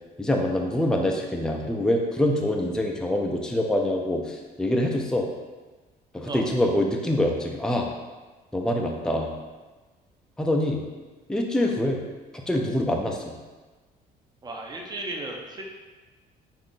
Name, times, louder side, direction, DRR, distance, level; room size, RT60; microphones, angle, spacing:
voice 1, 0.2-5.3 6.1-7.9 8.5-9.3 10.4-10.8 11.3-12.0 12.5-13.2, left 1 dB, 5° left, 1 dB, 0.5 m, -25 dB
voice 2, 14.4-15.6, right 2 dB, 25° right, 0 dB, 0.8 m, -35 dB
5.7 x 2.5 x 3.7 m, 1.3 s
cardioid pair, 110°, 17 cm